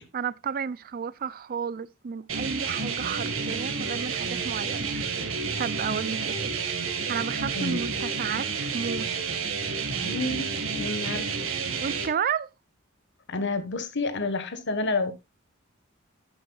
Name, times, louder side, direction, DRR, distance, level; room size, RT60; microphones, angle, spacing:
voice 1, 0.1-5.3 5.6-6.5 7.1-9.4 11.8-12.5, right 7 dB, 45° right, 0.4 m, -32 dB
sound 1, 2.3-12.1, right 5 dB, 75° right, 1.7 m, -30 dB
voice 2, 10.0-11.3 13.3-15.1, left 3 dB, 60° left, 1.5 m, -29 dB
11.0 x 8.7 x 2.4 m
head